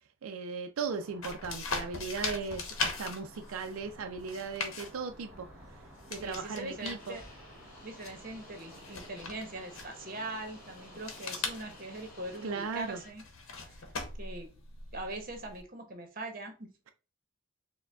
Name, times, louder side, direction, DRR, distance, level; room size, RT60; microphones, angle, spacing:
voice 1, 0.2-5.5 6.1-7.2 12.4-13.0, right 5 dB, 85° right, 0.4 m, -37 dB
sound 1, 0.8-12.6, equal, 5° right, 0.9 m, -55 dB
sound 2, 1.2-15.6, left 4 dB, 80° left, 0.8 m, -41 dB
voice 2, 6.2-7.2 7.8-13.9 14.2-14.5 14.9-16.7, right 2 dB, 40° right, 0.9 m, -42 dB
sound 3, 6.4-13.1, left 2 dB, 45° left, 1.3 m, -55 dB
4.7 x 2.2 x 3.4 m
head